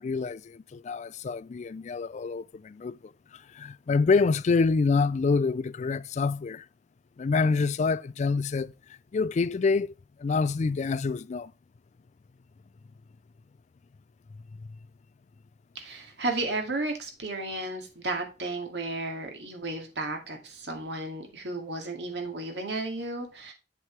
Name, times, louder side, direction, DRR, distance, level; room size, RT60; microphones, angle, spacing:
voice 1, 0.0-3.0 3.3-6.7 7.2-8.7 9.1-9.9 10.2-11.5 14.6-14.7, left 4 dB, 40° left, 0.3 m, -26 dB
voice 2, 15.7-23.5, right 2 dB, 75° right, 2.2 m, -33 dB
8.2 x 7.4 x 3.2 m
head